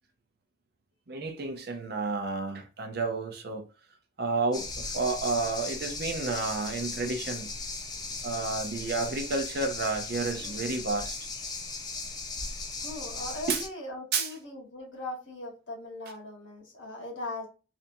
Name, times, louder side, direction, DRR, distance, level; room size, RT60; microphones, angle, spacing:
voice 1, 1.1-3.7 4.2-7.5 8.2-11.2 13.5-13.6 14.1-14.3, right 3 dB, 50° right, 0.6 m, -31 dB
sound 1, 4.5-13.7, left 3 dB, 20° left, 0.6 m, -37 dB
voice 2, 12.8-17.5, left 2 dB, 70° left, 1.7 m, -39 dB
3.4 x 2.7 x 2.7 m
head